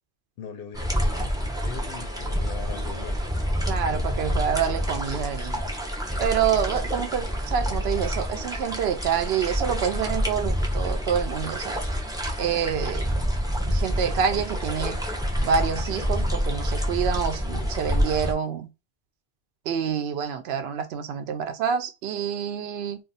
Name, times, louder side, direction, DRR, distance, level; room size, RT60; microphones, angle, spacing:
voice 1, 0.4-3.2, left 6 dB, 60° left, 0.7 m, -40 dB
sound 1, 0.7-18.3, equal, 5° right, 0.4 m, -27 dB
voice 2, 3.7-5.6 6.2-11.9 12.4-13.1 13.7-15.0 15.4-18.7 19.7-23.0, right 7 dB, 65° right, 0.8 m, -27 dB
2.4 x 2.3 x 3.9 m
omnidirectional pair, 1.2 m